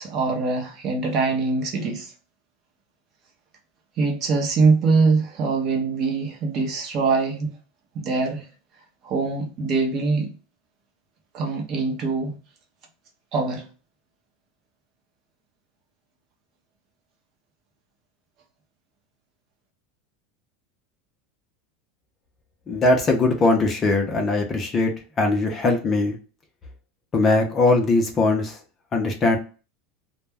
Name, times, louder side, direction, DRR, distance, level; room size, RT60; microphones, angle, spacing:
voice 1, 0.0-2.1 4.0-7.5 7.9-8.5 9.0-10.3 11.3-12.4 13.3-13.6, right 4 dB, 40° right, 0.7 m, -23 dB
voice 2, 22.7-24.9 25.2-26.2 27.1-28.6 28.9-29.4, left 2 dB, 25° left, 0.5 m, -20 dB
2.2 x 2.0 x 3.2 m
supercardioid pair, 150°, 0 cm